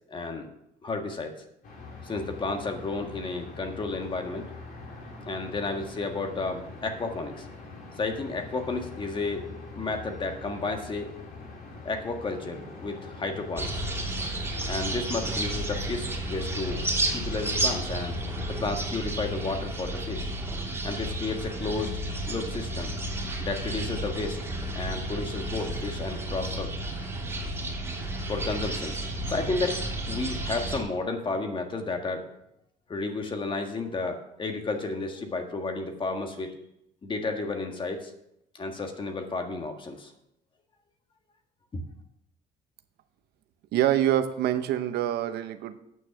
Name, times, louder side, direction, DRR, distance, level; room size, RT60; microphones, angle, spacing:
voice 1, 0.1-0.5 0.8-1.4 2.0-4.5 5.3-7.4 8.0-9.5 9.7-11.1 11.8-13.8 14.7-16.8 17.1-18.2 18.5-20.3 20.8-22.0 22.2-22.9 23.4-24.4 24.7-26.7 28.3-29.0 29.3-29.8 30.1-32.2 32.9-36.5 37.0-38.1 38.5-40.1 41.7-41.8, left 3 dB, 30° left, 5 dB, 1.6 m, -32 dB
sound 1, 1.6-18.8, left 3 dB, 55° left, 2.9 m, -43 dB
sound 2, 13.6-30.8, right 1 dB, 15° right, 2.7 m, -32 dB
voice 2, 43.7-45.8, right 11 dB, 75° right, 10 dB, 0.8 m, -25 dB
9.2 x 6.3 x 7.0 m, 0.80 s
cardioid pair, 110°, 17 cm